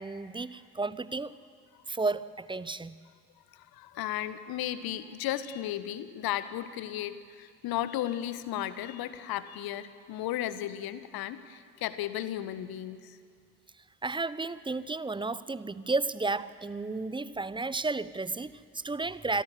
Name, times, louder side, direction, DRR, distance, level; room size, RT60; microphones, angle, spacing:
voice 1, 0.0-1.3 1.9-3.0 14.0-19.4, right 3 dB, 10° right, 17 dB, 0.8 m, -32 dB
voice 2, 3.5-13.2, left 12 dB, 55° left, 14 dB, 1.3 m, -35 dB
27.5 x 21.5 x 7.8 m, 2.2 s
figure-of-eight pair, 45°, 44 cm